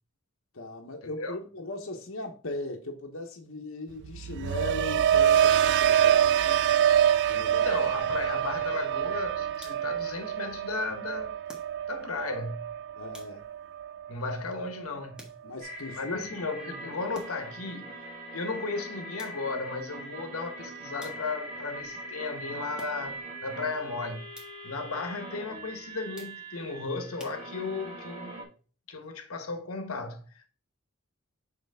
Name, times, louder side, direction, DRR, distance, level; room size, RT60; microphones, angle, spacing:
voice 1, 0.5-6.7 7.3-7.8 13.0-13.5 15.4-16.5, left 2 dB, 70° left, 1.1 m, -38 dB
sound 1, 4.0-14.1 14.5-14.9, right 9 dB, 55° right, 0.3 m, -26 dB
voice 2, 7.6-11.3 11.9-12.7 14.1-15.3 15.9-24.3 24.6-28.4 28.9-30.5, left 3 dB, 85° left, 1.2 m, -35 dB
sound 2, 9.5-10.1 11.5-12.1 13.1-13.7 15.2-15.8 17.1-17.6 19.2-19.7 21.0-21.6 22.8-23.3 24.3-24.8 26.1-26.7 27.2-27.9, equal, 5° right, 1.4 m, -52 dB
sound 3, 15.6-28.4, right 1 dB, 35° right, 1.9 m, -42 dB
6.8 x 4.5 x 3.5 m
head